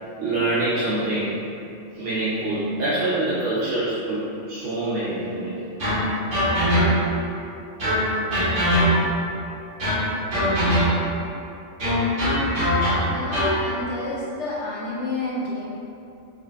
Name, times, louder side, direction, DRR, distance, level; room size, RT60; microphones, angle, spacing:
voice 1, 0.2-1.4 1.9-5.6, right 2 dB, 75° right, -11 dB, 1.0 m, -25 dB
sound 1, 5.8-7.2 7.8-9.3 9.8-11.2 11.8-13.6, equal, 55° right, 1.4 m, -21 dB
voice 2, 13.1-15.7, left 2 dB, 70° left, -7 dB, 0.9 m, -30 dB
4.7 x 2.2 x 2.4 m, 2.7 s
omnidirectional pair, 1.3 m